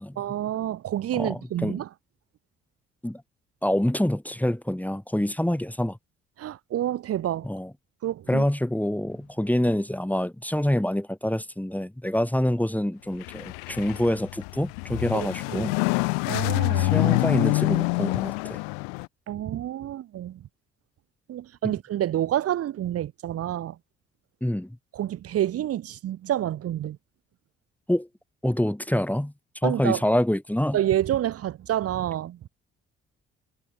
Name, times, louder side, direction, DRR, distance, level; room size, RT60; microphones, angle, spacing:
voice 1, 0.2-1.9 6.4-7.5 8.0-8.4 15.1-15.7 16.2-17.0 19.3-20.5 21.3-23.8 24.9-27.0 29.6-30.0 30.7-32.4, right 12 dB, 45° right, 1.1 m, -28 dB
voice 2, 1.2-1.8 3.0-3.2 3.6-6.0 7.4-7.7 8.3-15.7 16.8-18.6 21.6-21.7 24.4-24.8 27.9-28.1 28.4-29.3 29.6-30.8, left 1 dB, 5° left, 4.2 m, -26 dB
sound 1, 13.1-19.1, left 40 dB or more, 65° left, 1.4 m, -26 dB
figure-of-eight pair, 45°, 33 cm